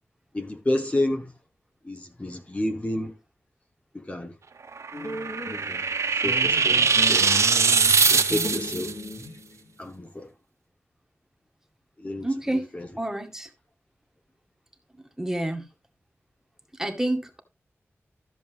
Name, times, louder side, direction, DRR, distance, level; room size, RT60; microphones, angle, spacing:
voice 1, 0.3-1.3 1.8-3.1 3.9-4.3 5.4-5.8 6.2-6.8 7.1-7.3 8.1-8.9 9.8-10.3 12.0-12.9, left 1 dB, 25° left, 1.4 m, -30 dB
sound 1, 4.8-8.9, right 5 dB, 85° right, 1.3 m, -22 dB
sound 2, 4.9-5.9 6.2-9.8, left 2 dB, 65° left, 3.9 m, -36 dB
voice 2, 12.2-12.7 13.0-13.5 15.2-15.7 16.8-17.4, right 1 dB, 10° right, 1.9 m, -28 dB
13.5 x 7.2 x 3.5 m
wide cardioid pair, 85°, 5 cm